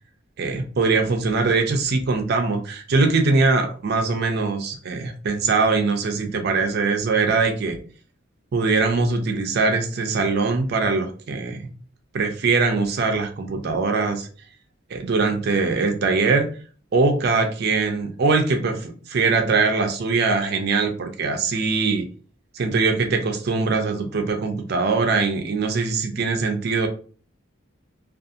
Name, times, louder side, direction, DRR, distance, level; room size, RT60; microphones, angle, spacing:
voice 1, 0.4-7.8 8.5-11.7 12.1-14.3 14.9-16.5 16.9-22.1 22.5-26.9, right 4 dB, 55° right, 5 dB, 0.4 m, -22 dB
2.6 x 2.4 x 2.5 m, 0.41 s
head